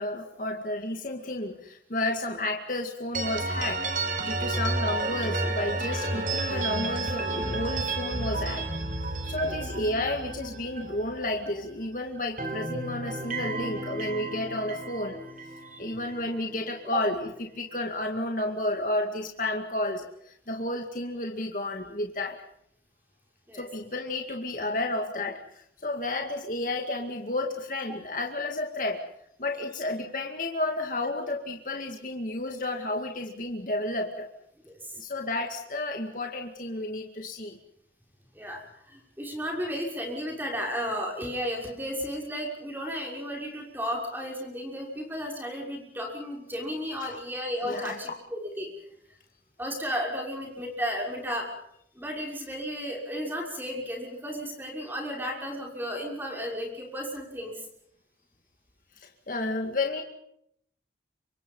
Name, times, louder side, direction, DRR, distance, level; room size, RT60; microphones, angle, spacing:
voice 1, 0.0-3.8 4.2-8.6 9.2-15.2 15.8-22.4 23.5-29.0 29.4-34.3 35.0-37.6 47.7-47.9 59.0-60.0, left 2 dB, 50° left, 3 dB, 2.2 m, -31 dB
sound 1, 3.1-11.9 12.2-16.3, right 2 dB, 50° right, 4.4 m, -32 dB
voice 2, 15.6-16.0 16.9-17.0 23.5-23.7 34.6-35.0 38.3-48.7 49.6-51.5 51.9-57.6, equal, 10° right, 0 dB, 6.2 m, -34 dB
28.5 x 26.0 x 5.6 m, 0.73 s
head